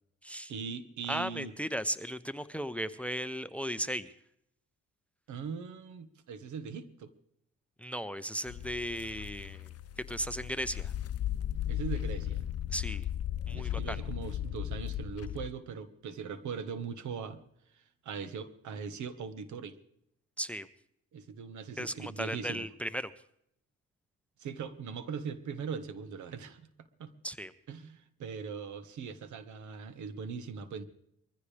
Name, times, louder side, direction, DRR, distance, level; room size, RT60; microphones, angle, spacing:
voice 1, 0.5-1.5 5.3-7.1 11.6-12.5 13.5-17.4 17.7-19.8 21.1-22.7 24.4-26.7 27.0-27.1 27.7-30.8, right 6 dB, 75° right, 11 dB, 1.5 m, -40 dB
voice 2, 1.1-4.1 7.8-9.7 10.1-10.9 12.7-13.1 13.5-14.0 20.4-20.7 21.8-23.1 27.2-27.5, equal, 5° left, 14 dB, 0.7 m, -36 dB
sound 1, 8.5-15.5, left 11 dB, 55° left, 0.8 m, -36 dB
22.5 x 15.0 x 3.4 m, 0.72 s
cardioid pair, 90°, 30 cm